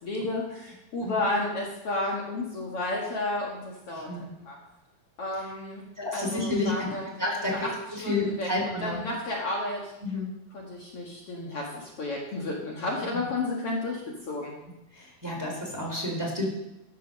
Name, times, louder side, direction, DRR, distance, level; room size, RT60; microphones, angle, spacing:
voice 1, 0.0-4.6 5.2-5.8 6.1-7.1 7.5-7.7 8.0-9.9 10.5-14.5, left 2 dB, 50° left, -2 dB, 2.7 m, -32 dB
voice 2, 6.0-6.9 7.2-9.0 10.0-10.3 14.9-16.5, left 2 dB, 5° right, -1 dB, 3.3 m, -30 dB
13.5 x 8.3 x 6.5 m, 0.90 s
omnidirectional pair, 3.5 m